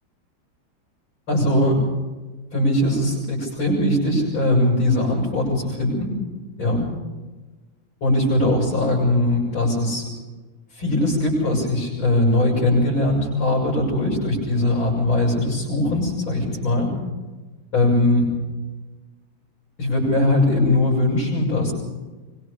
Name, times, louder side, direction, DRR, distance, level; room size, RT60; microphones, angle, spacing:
voice 1, 1.3-1.8 2.5-6.2 6.6-6.9 8.0-10.0 10.7-16.9 17.7-18.3 19.8-21.7, left 1 dB, 80° left, -6 dB, 8.2 m, -20 dB
25.0 x 23.0 x 5.0 m, 1.2 s
omnidirectional pair, 2.2 m